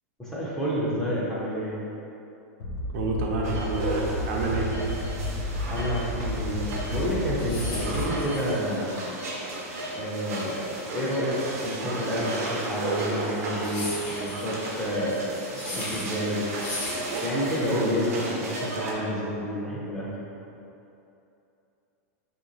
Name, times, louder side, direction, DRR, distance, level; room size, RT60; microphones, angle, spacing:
voice 1, 0.2-1.7 5.7-9.0 9.9-16.4 17.2-20.1, equal, 5° left, -8 dB, 0.6 m, -29 dB
sound 1, 2.6-8.4, left 1 dB, 75° left, 0.5 m, -32 dB
voice 2, 2.9-4.7 17.7-18.1, right 2 dB, 60° right, -2 dB, 0.5 m, -29 dB
sound 2, 3.4-18.9, right 2 dB, 90° right, 0.9 m, -34 dB
sound 3, 7.3-17.8, left 2 dB, 50° left, 1.3 m, -38 dB
3.1 x 3.0 x 3.8 m, 2.8 s
supercardioid pair, 165°, 8 cm